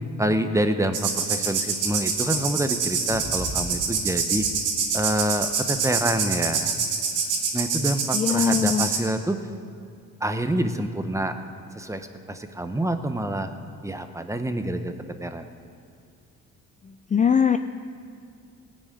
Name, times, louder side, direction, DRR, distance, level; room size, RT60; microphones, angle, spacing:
voice 1, 0.2-4.5 4.9-6.7 7.5-9.4 10.2-11.3 11.7-13.5 13.8-14.9 15.2-15.5, right 1 dB, 10° right, 8 dB, 1.0 m, -27 dB
sound 1, 0.9-9.0, right 5 dB, 85° right, 2.2 m, -26 dB
voice 2, 8.1-8.9 17.1-17.6, left 7 dB, 25° left, 9 dB, 0.4 m, -21 dB
17.5 x 6.4 x 9.2 m, 2.4 s
cardioid pair, 90°, 30 cm